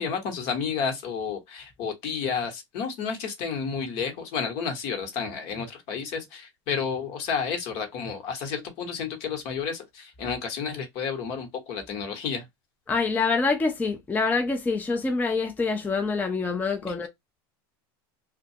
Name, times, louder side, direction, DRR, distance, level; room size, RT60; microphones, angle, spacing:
voice 1, 0.0-12.4, left 6 dB, 60° left, 1.1 m, -31 dB
voice 2, 12.9-17.1, left 4 dB, 15° left, 0.5 m, -26 dB
2.4 x 2.2 x 2.7 m
supercardioid pair, 110°, 13 cm